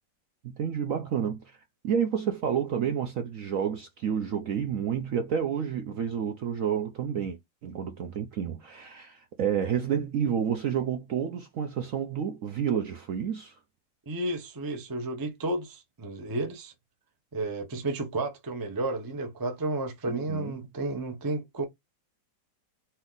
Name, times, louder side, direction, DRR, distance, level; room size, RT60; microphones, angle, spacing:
voice 1, 0.4-1.4 1.8-13.5 20.1-20.5, right 8 dB, 65° right, 0.8 m, -30 dB
voice 2, 14.1-16.7 17.3-21.6, right 2 dB, 30° right, 0.4 m, -32 dB
4.3 x 2.9 x 3.9 m
omnidirectional pair, 2.0 m